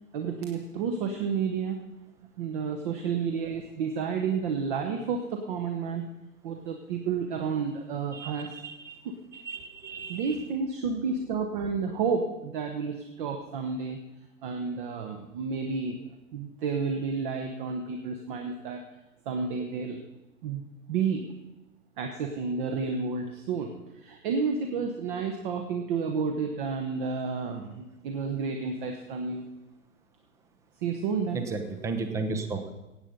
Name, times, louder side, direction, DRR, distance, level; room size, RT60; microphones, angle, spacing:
voice 1, 0.1-1.8 2.4-6.0 6.4-8.5 9.0-9.1 10.1-14.0 14.4-16.0 16.3-18.8 19.2-20.0 20.4-20.6 20.9-21.2 22.0-29.4 30.8-31.4, right 5 dB, 35° right, 4 dB, 1.2 m, -31 dB
voice 2, 8.1-9.0 9.3-10.3 31.3-32.7, right 3 dB, 5° right, 8 dB, 0.7 m, -34 dB
16.5 x 8.8 x 5.3 m, 0.97 s
figure-of-eight pair, 115°, 44 cm